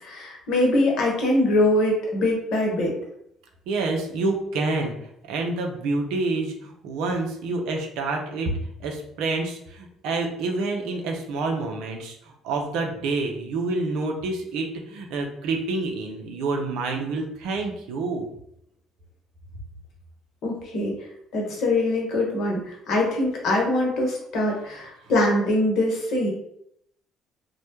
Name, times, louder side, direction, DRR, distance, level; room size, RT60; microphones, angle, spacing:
voice 1, 0.0-2.9 20.4-20.9 21.3-26.3, left 1 dB, 65° left, -1 dB, 0.9 m, -23 dB
voice 2, 3.7-5.0 5.3-8.5 8.8-18.3, right 3 dB, 75° right, 2 dB, 0.5 m, -28 dB
2.1 x 2.1 x 2.9 m, 0.74 s
hypercardioid pair, 60°, 0 cm